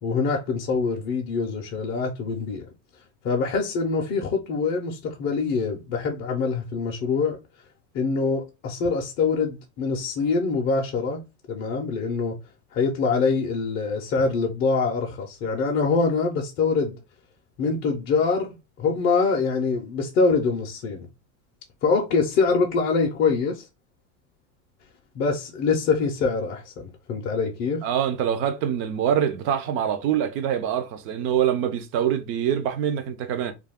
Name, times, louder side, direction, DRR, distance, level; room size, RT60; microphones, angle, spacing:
voice 1, 0.0-2.7 3.2-7.4 7.9-11.2 11.5-12.4 12.7-17.0 17.6-21.1 21.8-23.7 25.2-26.7 27.1-27.9, left 4 dB, 30° left, 0.5 m, -24 dB
voice 2, 27.8-33.5, right 9 dB, 35° right, 0.4 m, -24 dB
2.4 x 2.2 x 3.4 m
supercardioid pair, 140°, 39 cm